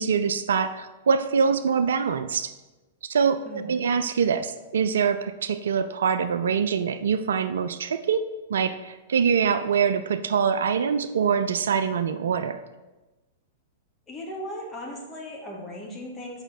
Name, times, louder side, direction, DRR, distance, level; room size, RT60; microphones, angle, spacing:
voice 1, 0.0-2.5 3.0-12.6, right 6 dB, 70° right, 11 dB, 0.4 m, -24 dB
voice 2, 3.5-3.9 14.1-16.4, equal, 20° left, -1 dB, 1.9 m, -37 dB
6.8 x 5.5 x 4.3 m, 1.1 s
figure-of-eight pair, 100°, 0 cm